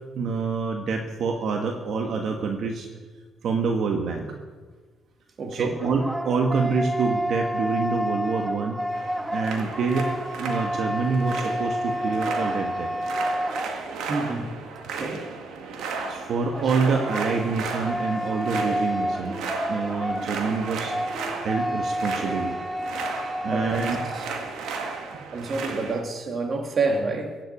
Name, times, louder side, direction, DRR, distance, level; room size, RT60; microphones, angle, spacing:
voice 1, 0.1-2.9 3.4-4.3 5.5-8.8 9.3-10.1 10.4-12.9 16.1-19.4 19.7-21.0 21.4-22.5 23.4-24.0 25.1-25.2, right 4 dB, 70° right, 1.5 m, -26 dB
voice 2, 5.4-5.7 14.1-14.6 14.8-15.3 23.5-23.8 24.0-24.3 25.3-27.4, right 3 dB, 45° right, 2.3 m, -28 dB
sound 1, 5.5-14.2 16.5-24.3, equal, ahead, 0.8 m, -30 dB
sound 2, 8.9-26.0, right 4 dB, 85° right, 2.0 m, -34 dB
16.0 x 7.8 x 8.7 m
cardioid pair, 90°, 0 cm